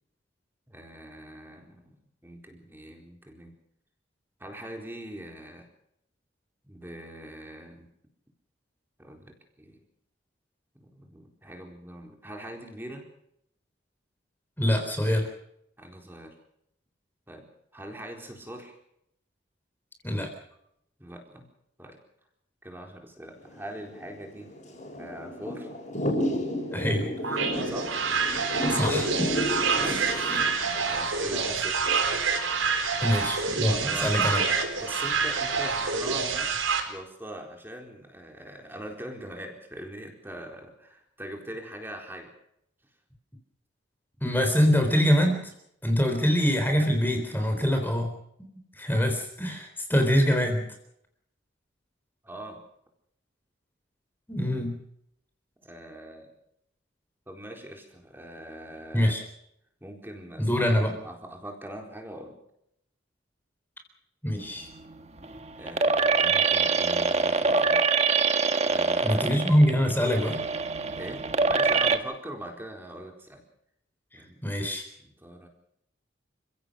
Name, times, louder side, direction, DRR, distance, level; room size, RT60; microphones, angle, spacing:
voice 1, 0.7-2.0 2.2-3.5 4.4-5.7 6.6-7.9 9.0-9.8 10.7-13.1 15.8-16.3 17.3-17.5 17.7-18.8 21.0-21.5 21.8-22.0 22.6-24.5 24.9-25.7 27.6-28.0 29.4-32.0 32.8-33.1 33.7-34.5 34.8-36.5 36.9-42.3 52.2-52.6 55.6-56.3 57.3-59.2 59.8-60.6 61.0-62.3 65.6-67.8 68.7-69.4 70.9-73.4 74.1-74.6 75.0-75.5, right 1 dB, 10° right, 2 dB, 4.3 m, -42 dB
voice 2, 14.6-15.3 20.0-20.3 26.7-27.5 28.7-29.3 30.3-30.5 33.0-34.4 44.2-45.4 45.8-48.1 48.8-50.7 54.3-54.8 58.9-59.2 60.4-61.0 64.2-64.7 69.0-70.4 74.1-74.8, equal, 10° left, 4 dB, 3.8 m, -24 dB
Thunder / Rain, 23.4-30.5, equal, 35° left, 6.8 m, -32 dB
sound 1, 27.2-36.8, right 5 dB, 80° right, 4.4 m, -27 dB
sound 2, 64.4-72.0, right 4 dB, 30° right, 1.5 m, -25 dB
29.5 x 16.5 x 6.6 m, 0.76 s
head